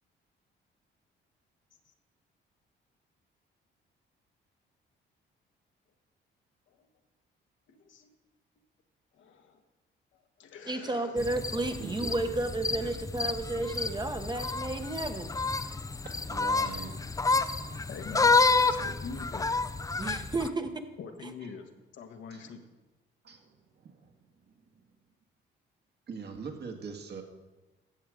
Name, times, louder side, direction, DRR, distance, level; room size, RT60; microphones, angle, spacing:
voice 1, 7.7-8.1 9.1-9.6 10.1-11.2 17.6-18.3 18.6-19.5 21.0-22.6, left 5 dB, 75° left, 5 dB, 1.3 m, -45 dB
voice 2, 10.7-15.3 20.0-20.7, right 2 dB, 20° right, 7 dB, 1.0 m, -32 dB
sound 1, 11.2-20.5, left 3 dB, 15° left, 0.5 m, -29 dB
voice 3, 11.8-12.1 16.0-17.0 17.4-17.6 22.3-22.5 23.2-23.5 23.8-24.1 26.1-27.2, right 5 dB, 55° right, 4 dB, 1.8 m, -42 dB
14.0 x 7.9 x 4.9 m, 1.1 s
cardioid pair, 90°, 20 cm